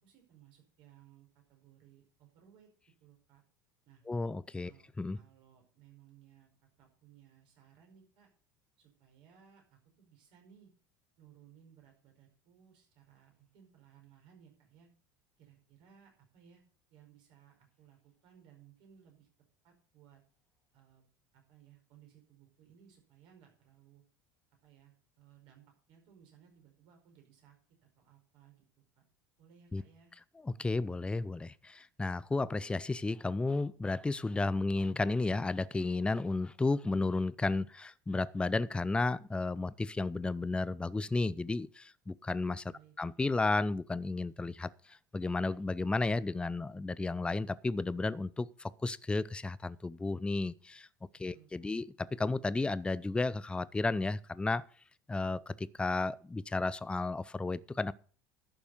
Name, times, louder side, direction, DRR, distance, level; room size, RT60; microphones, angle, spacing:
voice 1, 0.0-2.7 3.0-3.4 3.8-4.0 4.6-4.9 5.1-6.5 6.8-8.3 8.8-10.7 11.2-14.9 15.4-16.6 16.9-19.3 19.6-20.2 20.7-21.1 21.3-24.0 24.6-27.6 27.8-28.7 28.9-29.0 29.4-30.1 42.7-42.9 51.3-51.8, right 9 dB, 55° right, 5.1 m, -61 dB
voice 2, 4.1-4.7 5.0-5.2 29.7-29.8 30.4-42.7 43.0-50.9 51.1-54.6 55.1-57.9, left 3 dB, 10° left, 0.5 m, -33 dB
11.5 x 6.9 x 6.6 m
figure-of-eight pair, 70°, 10 cm